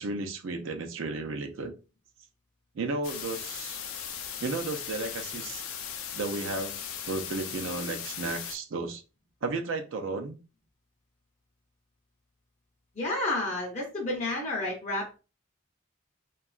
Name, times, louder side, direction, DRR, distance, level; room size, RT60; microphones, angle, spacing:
voice 1, 0.0-1.7 2.8-3.8 4.4-5.6 6.1-6.8 7.1-9.0 9.4-10.4, right 3 dB, 70° right, 0.4 m, -33 dB
sound 1, 3.0-8.6, left 8 dB, 80° left, 0.4 m, -38 dB
voice 2, 12.9-15.2, left 2 dB, 35° left, 0.6 m, -30 dB
2.8 x 2.3 x 2.3 m
head